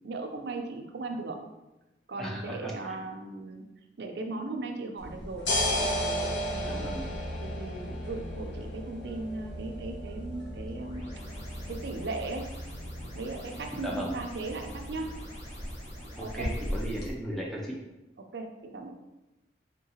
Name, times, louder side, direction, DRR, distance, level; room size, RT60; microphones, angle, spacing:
voice 1, 0.0-1.4 2.1-3.6 4.0-5.5 5.8-6.9 7.4-11.0 11.7-12.5 13.2-15.1 16.2-16.5 18.2-18.9, right 3 dB, 65° right, 3 dB, 0.5 m, -37 dB
voice 2, 2.2-3.0 6.6-7.1 13.8-14.1 16.2-17.8, equal, ahead, -4 dB, 0.4 m, -36 dB
sound 1, 5.0-17.1, equal, 85° left, 1.1 m, -35 dB
sound 2, 10.3-17.1, equal, 35° left, 0.8 m, -48 dB
3.8 x 3.7 x 2.8 m, 1.0 s
head